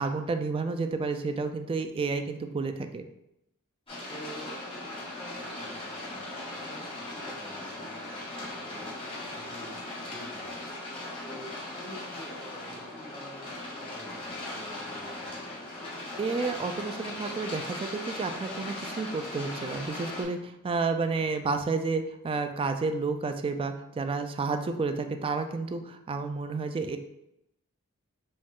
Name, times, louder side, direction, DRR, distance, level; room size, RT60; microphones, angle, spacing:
voice 1, 0.0-3.1 16.2-27.0, right 4 dB, 25° right, 8 dB, 0.3 m, -31 dB
sound 1, 3.9-20.2, left 2 dB, 25° left, 1.4 m, -39 dB
voice 2, 4.1-4.6 5.2-8.9 9.3-10.6 11.2-15.7, equal, ahead, -3 dB, 0.8 m, -48 dB
5.1 x 2.4 x 3.6 m, 0.83 s
head